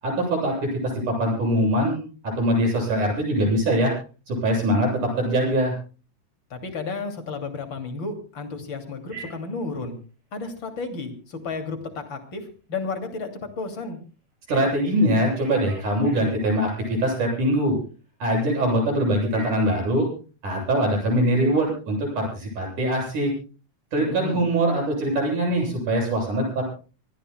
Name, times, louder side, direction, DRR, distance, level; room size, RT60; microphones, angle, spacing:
voice 1, 0.0-3.9 4.3-5.7 14.5-17.8 18.2-20.1 20.4-23.3 23.9-26.6, right 1 dB, 90° right, 0 dB, 9.7 m, -23 dB
voice 2, 6.5-10.0 10.3-14.0 24.1-24.5, left 4 dB, 40° left, 5 dB, 3.3 m, -32 dB
Telephone, 9.1-9.6 14.5-17.4 19.3-19.8, right 2 dB, 60° right, 6.0 m, -44 dB
25.5 x 19.0 x 2.3 m, 0.36 s
omnidirectional pair, 3.4 m